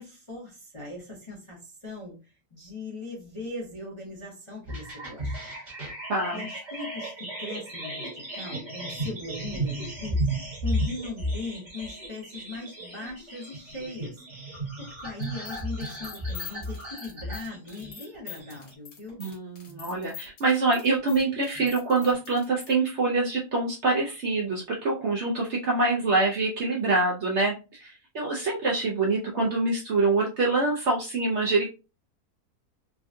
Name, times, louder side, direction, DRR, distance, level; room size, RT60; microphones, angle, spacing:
voice 1, 0.0-5.3 6.3-10.2 10.6-14.2 14.8-19.2, left 3 dB, 25° left, -4 dB, 0.7 m, -39 dB
sound 1, 4.7-18.7, right 1 dB, 30° right, 1.2 m, -34 dB
voice 2, 6.1-6.5 19.2-31.7, right 3 dB, 60° right, -1 dB, 0.8 m, -25 dB
sound 2, 15.2-22.7, left 6 dB, 70° left, 1.6 m, -44 dB
3.6 x 2.2 x 2.5 m, 0.29 s
omnidirectional pair, 1.7 m